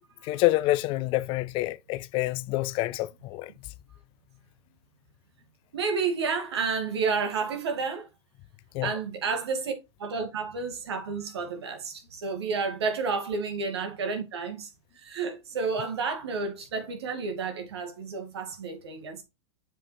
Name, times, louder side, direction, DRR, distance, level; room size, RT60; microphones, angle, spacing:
voice 1, 0.2-3.5 8.7-8.9, left 18 dB, 40° left, 0.5 m, -27 dB
voice 2, 5.7-8.1 8.8-9.7 10.0-14.7 15.0-19.2, right 5 dB, 70° right, 2.3 m, -30 dB
7.2 x 5.5 x 3.3 m
hypercardioid pair, 100°, 14 cm